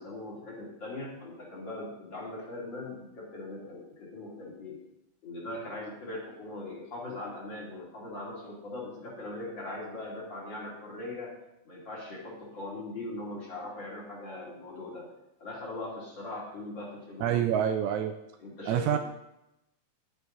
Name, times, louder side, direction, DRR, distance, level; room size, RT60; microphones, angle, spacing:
voice 1, 0.0-4.8 5.2-11.3 11.6-15.1 15.4-17.5 18.4-19.0, left 2 dB, 40° left, -4 dB, 3.2 m, -40 dB
voice 2, 17.2-18.1 18.7-19.0, right 9 dB, 85° right, 7 dB, 2.0 m, -26 dB
10.5 x 9.8 x 4.0 m, 0.89 s
omnidirectional pair, 3.4 m